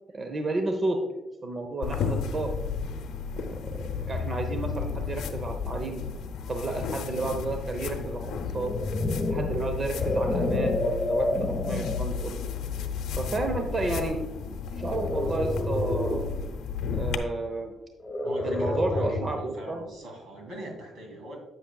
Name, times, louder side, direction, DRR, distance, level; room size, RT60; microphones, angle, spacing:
voice 1, 0.1-1.0 1.4-2.5 3.3-6.0 6.5-8.7 9.3-12.4 13.2-14.2 14.4-16.3 16.9-17.7 18.4-19.8, right 2 dB, 35° right, 5 dB, 0.9 m, -31 dB
sound 1, 1.8-17.2, left 6 dB, 80° left, 0.7 m, -33 dB
sound 2, 8.5-12.1 12.8-13.0 14.8-16.3 18.0-19.5, left 2 dB, 25° left, 1.2 m, -29 dB
voice 2, 18.2-21.4, right 1 dB, 80° right, 0 dB, 2.6 m, -41 dB
8.9 x 8.1 x 2.3 m, 1.1 s
cardioid pair, 90°, 0 cm